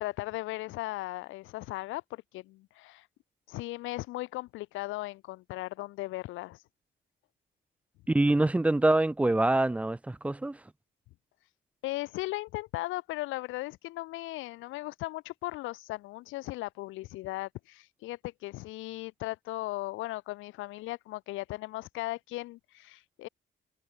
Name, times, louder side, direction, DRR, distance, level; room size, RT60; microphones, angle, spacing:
voice 1, 0.0-3.1 3.5-6.6 11.8-23.3, left 18 dB, 90° left, 0.5 m, -37 dB
voice 2, 8.1-10.6, right 2 dB, 5° right, 0.3 m, -25 dB
cardioid pair, 90°, 20 cm